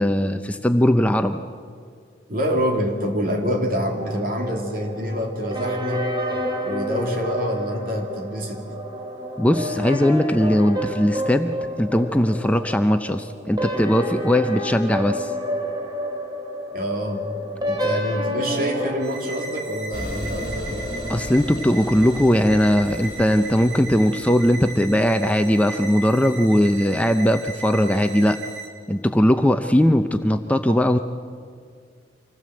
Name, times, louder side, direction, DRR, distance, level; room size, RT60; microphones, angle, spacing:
voice 1, 0.0-1.4 9.4-15.3 21.1-28.4 28.9-31.0, equal, 10° left, 7 dB, 0.6 m, -19 dB
voice 2, 2.3-6.1 6.6-8.6 16.7-17.3 17.7-20.9, equal, 50° right, 2 dB, 2.8 m, -26 dB
sound 1, 4.0-21.3, equal, 25° right, 3.2 m, -30 dB
sound 2, 19.0-28.7, right 4 dB, 70° right, 3.0 m, -37 dB
sound 3, 19.9-25.3, left 1 dB, 50° left, 2.2 m, -36 dB
25.5 x 16.0 x 7.7 m, 2.2 s
head